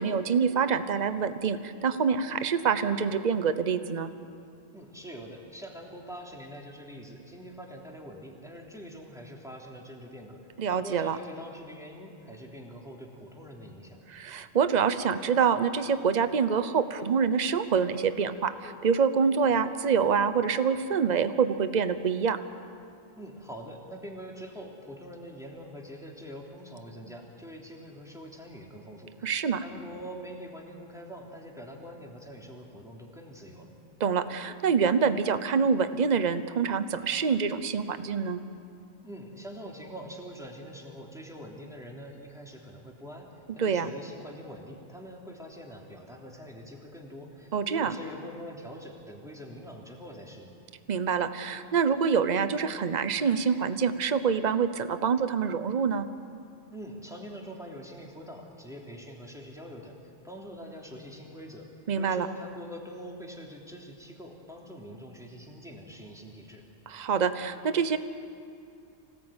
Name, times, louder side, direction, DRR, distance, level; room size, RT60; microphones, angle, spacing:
voice 1, 0.0-4.1 10.6-11.2 14.1-22.4 29.2-29.6 34.0-38.4 43.6-43.9 47.5-47.9 50.9-56.1 61.9-62.3 66.9-68.0, right 6 dB, 40° right, 11 dB, 0.9 m, -26 dB
voice 2, 4.7-10.4 10.7-14.0 23.2-33.7 39.0-50.5 56.7-61.7 61.9-66.6, equal, 5° right, -1 dB, 3.2 m, -44 dB
26.0 x 18.0 x 8.9 m, 2.5 s
omnidirectional pair, 1.2 m